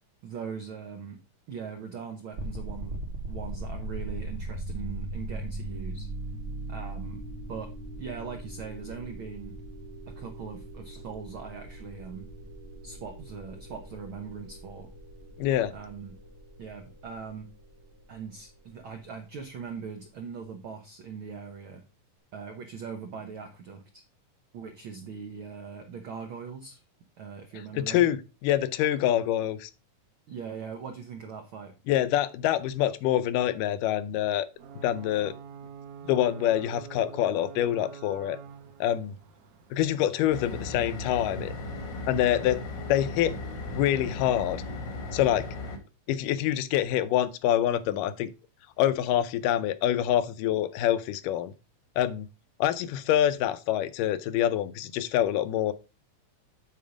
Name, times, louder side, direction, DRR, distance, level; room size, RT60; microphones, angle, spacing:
voice 1, 0.2-1.2 1.5-3.0 3.3-6.1 6.7-7.2 7.5-7.7 8.0-9.6 10.1-12.3 12.8-14.9 15.7-16.2 16.6-17.5 18.1-21.8 22.3-24.0 24.5-26.8 27.2-28.1 30.3-31.7, right 6 dB, 90° right, 1.1 m, -40 dB
sound 1, 2.3-19.3, right 2 dB, 45° right, 1.9 m, -40 dB
voice 2, 15.4-15.7 27.7-29.7 31.9-34.5 34.8-35.3 36.1-38.4 38.8-39.1 39.7-41.5 42.1-42.6 42.9-43.4 43.7-44.6 45.1-45.5 46.1-48.3 48.8-51.5 52.0-52.3 52.6-55.7, left 11 dB, 85° left, 2.2 m, -26 dB
Ocean / Boat Water vehicle / Alarm, 34.6-42.1, right 7 dB, 65° right, 2.2 m, -47 dB
sound 2, 40.3-45.8, left 2 dB, 55° left, 1.4 m, -36 dB
9.1 x 4.2 x 5.0 m
omnidirectional pair, 3.7 m